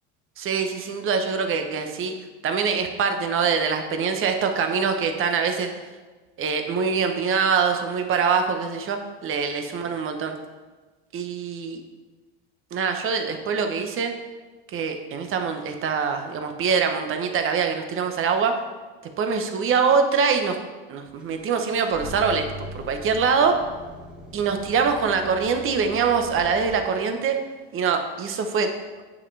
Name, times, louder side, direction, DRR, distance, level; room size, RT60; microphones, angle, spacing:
voice 1, 0.4-2.1 2.4-5.7 6.4-10.3 11.1-11.8 12.7-14.1 14.7-18.6 19.2-20.6 20.9-23.6 24.3-27.4 27.7-28.7, right 5 dB, 40° right, 6 dB, 0.9 m, -24 dB
sound 1, 21.2-26.7, right 1 dB, 5° right, 1.7 m, -41 dB
8.3 x 5.4 x 3.3 m, 1.3 s
supercardioid pair, 120°, 33 cm